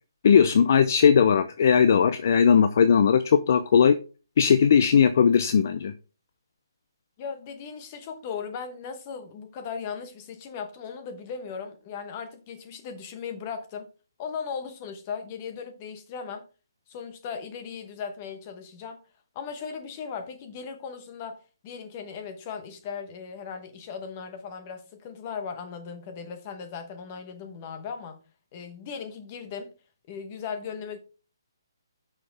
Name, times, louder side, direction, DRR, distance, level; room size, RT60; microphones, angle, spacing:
voice 1, 0.2-4.0 4.4-5.9, left 7 dB, 40° left, 0.5 m, -19 dB
voice 2, 7.2-13.9 14.2-16.5 16.9-19.0 19.3-28.2 28.5-29.7 30.1-31.0, left 6 dB, 20° left, 1.0 m, -37 dB
9.5 x 5.8 x 3.5 m
hypercardioid pair, 175°, 2 cm